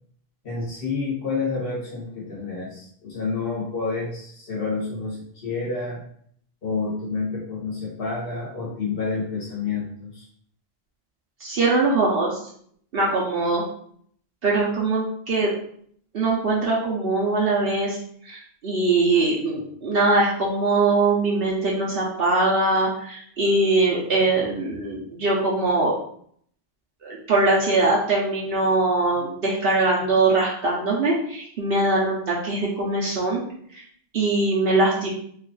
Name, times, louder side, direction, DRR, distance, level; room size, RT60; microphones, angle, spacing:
voice 1, 0.4-6.0 6.6-10.3, left 4 dB, 65° left, -3 dB, 1.4 m, -29 dB
voice 2, 11.4-12.4 12.9-13.6 14.4-15.5 16.1-18.0 18.2-18.4 18.6-25.9 27.0-33.4 33.7-33.8 34.1-35.1, right 2 dB, 70° right, -4 dB, 0.9 m, -22 dB
3.1 x 2.5 x 3.8 m, 0.62 s
omnidirectional pair, 1.0 m